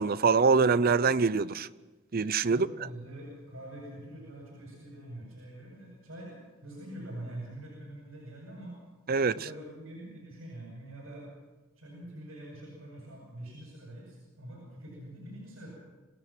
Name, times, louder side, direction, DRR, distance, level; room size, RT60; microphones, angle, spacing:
voice 1, 0.0-1.7 2.1-2.7 9.1-9.3, right 4 dB, 45° right, 0.6 m, -24 dB
voice 2, 2.5-8.8 9.2-11.3 11.8-15.7, right 1 dB, 70° right, 7.9 m, -45 dB
27.0 x 16.0 x 6.1 m
head